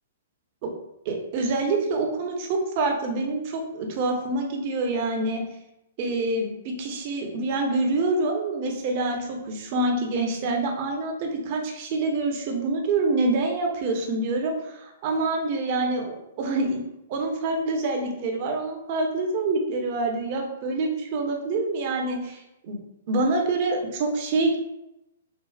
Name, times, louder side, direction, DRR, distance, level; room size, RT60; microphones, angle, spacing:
voice 1, 1.0-5.4 6.0-16.8 17.1-22.8 23.1-24.6, right 2 dB, 45° right, 2 dB, 0.8 m, -26 dB
4.6 x 2.4 x 2.3 m, 0.88 s
hypercardioid pair, 115°, 0 cm